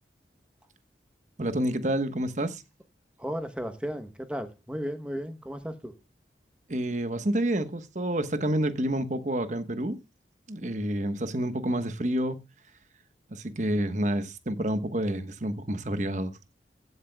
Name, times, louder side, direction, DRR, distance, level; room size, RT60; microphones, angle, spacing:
voice 1, 1.4-2.6 6.7-10.0 10.5-12.4 13.3-16.3, right 1 dB, 45° right, 1.1 m, -28 dB
voice 2, 3.2-5.9, equal, 5° right, 1.0 m, -35 dB
15.5 x 11.0 x 2.3 m
head